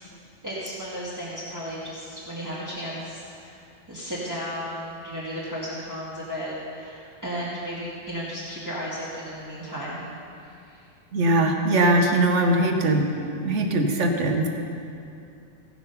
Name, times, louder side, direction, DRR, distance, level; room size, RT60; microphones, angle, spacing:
voice 1, 0.4-3.6 3.9-10.0 10.4-10.8, equal, 15° right, -8 dB, 1.6 m, -34 dB
voice 2, 11.1-14.5, right 1 dB, 75° right, 3 dB, 1.3 m, -21 dB
16.0 x 6.1 x 5.5 m, 2.5 s
omnidirectional pair, 1.2 m